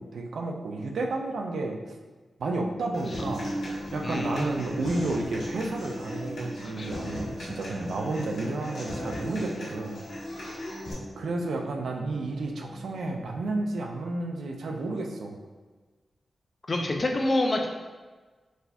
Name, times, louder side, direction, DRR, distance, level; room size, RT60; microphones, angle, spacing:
voice 1, 0.0-1.8 2.4-3.5 3.9-10.0 11.2-15.4, right 2 dB, 85° right, 2 dB, 0.4 m, -31 dB
Human voice / Acoustic guitar, 2.9-10.9, left 1 dB, 90° left, 1.2 m, -39 dB
sound 1, 3.2-13.8, right 1 dB, 65° left, 0.8 m, -39 dB
voice 2, 4.0-4.6 6.6-6.9 16.7-17.7, left 1 dB, 35° left, 2 dB, 0.4 m, -27 dB
4.1 x 2.7 x 2.3 m, 1.3 s
wide cardioid pair, 105°, 0 cm